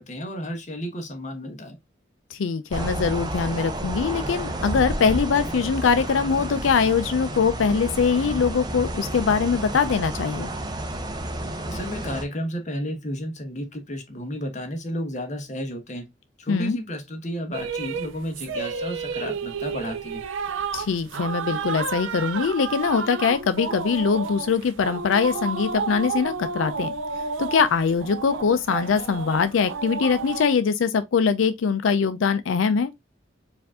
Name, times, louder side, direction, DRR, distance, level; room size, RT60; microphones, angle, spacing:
voice 1, 0.0-1.8 11.7-16.1 16.4-20.2, equal, 40° left, 1.0 m, -32 dB
voice 2, 2.3-10.5 16.5-16.8 20.7-26.9 27.4-32.9, left 5 dB, 90° left, 0.4 m, -22 dB
sound 1, 2.7-12.2, right 1 dB, 20° right, 0.6 m, -31 dB
sound 2, 17.5-30.5, right 5 dB, 85° right, 0.5 m, -31 dB
4.6 x 2.6 x 3.5 m
head